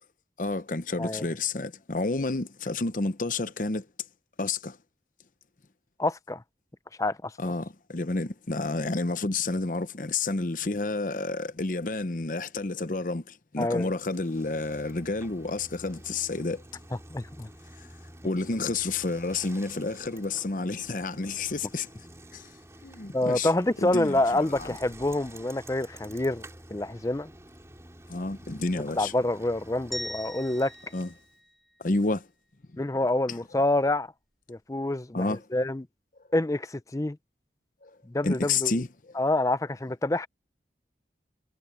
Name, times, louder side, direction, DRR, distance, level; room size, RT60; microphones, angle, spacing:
voice 1, 0.4-3.9 4.4-4.8 7.4-16.6 18.2-21.9 22.3-22.5 22.8-23.5 23.8-24.7 28.1-29.1 30.9-31.1 31.8-32.3 33.3-33.4 35.1-35.4 37.8-38.0 38.2-38.9, left 3 dB, 50° left, 0.8 m, -30 dB
voice 2, 6.0-6.4 7.0-7.3 13.6-13.9 17.1-17.5 23.1-26.4 26.7-27.3 29.0-30.7 32.8-34.1 34.5-35.9 36.3-37.2 38.1-38.7 39.2-40.3, left 2 dB, 20° left, 0.5 m, -27 dB
Bicycle, 13.8-31.3, right 1 dB, 15° right, 3.0 m, -49 dB
sound 1, 29.9-32.2, equal, ahead, 4.0 m, -41 dB
head